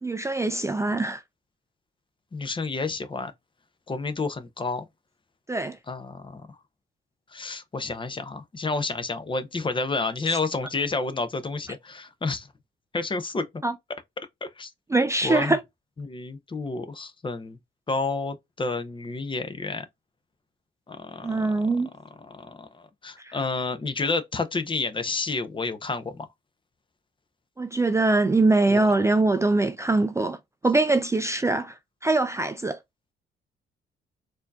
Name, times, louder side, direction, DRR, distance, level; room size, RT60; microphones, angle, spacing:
voice 1, 0.0-1.2 5.5-5.8 10.3-10.4 13.6-13.7 14.9-15.6 21.2-21.9 23.2-23.4 27.6-30.4 30.6-32.8, right 2 dB, 15° right, 0.4 m, -23 dB
voice 2, 2.3-3.3 3.9-4.9 5.9-6.5 7.3-12.5 12.9-13.5 14.4-14.7 15.2-15.6 16.0-17.6 17.9-19.9 20.9-21.6 22.2-26.3 28.7-28.9, left 3 dB, 25° left, 0.7 m, -30 dB
4.2 x 2.7 x 2.3 m
cardioid pair, 90°, 20 cm